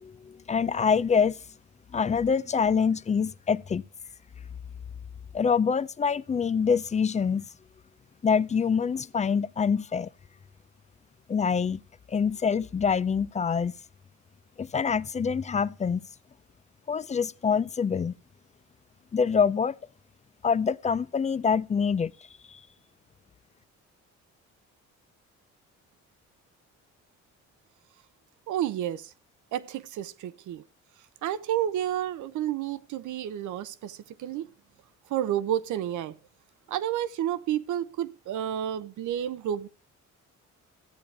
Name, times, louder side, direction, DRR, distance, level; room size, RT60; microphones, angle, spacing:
voice 1, 0.0-1.4 1.9-3.8 5.3-7.5 8.2-10.1 11.3-11.8 12.1-13.7 14.6-16.0 16.9-18.1 19.1-19.7 20.4-22.1 22.5-22.6, left 6 dB, 25° left, 0.4 m, -25 dB
voice 2, 28.5-29.1 29.5-30.6 31.2-34.5 35.1-36.1 36.7-39.7, right 11 dB, 75° right, 0.8 m, -30 dB
14.0 x 8.7 x 3.3 m
cardioid pair, 90°, 30 cm